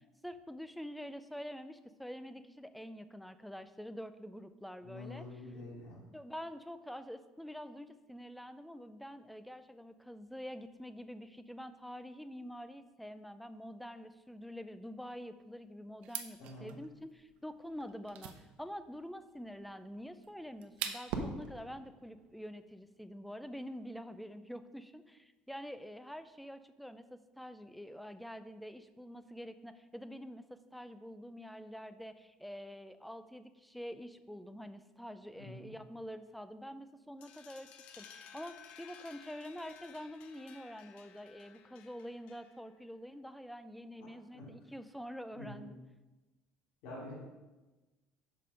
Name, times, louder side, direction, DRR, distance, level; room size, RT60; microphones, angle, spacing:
voice 1, 0.0-5.2 6.1-38.1 38.3-45.8, equal, ahead, 11 dB, 0.4 m, -46 dB
voice 2, 4.8-6.0 16.4-16.7 35.3-35.7 44.0-44.1 44.3-44.5 45.3-45.6 46.8-47.1, left 2 dB, 70° left, -9 dB, 2.8 m, -47 dB
sound 1, 16.0-21.3, right 9 dB, 60° right, 0.8 m, -46 dB
Fireworks, 21.1-23.3, right 4 dB, 80° right, 1.1 m, -43 dB
sound 2, 37.2-42.7, left 8 dB, 55° left, 0.8 m, -56 dB
6.9 x 5.3 x 6.3 m, 1.2 s
cardioid pair, 150°, 2 cm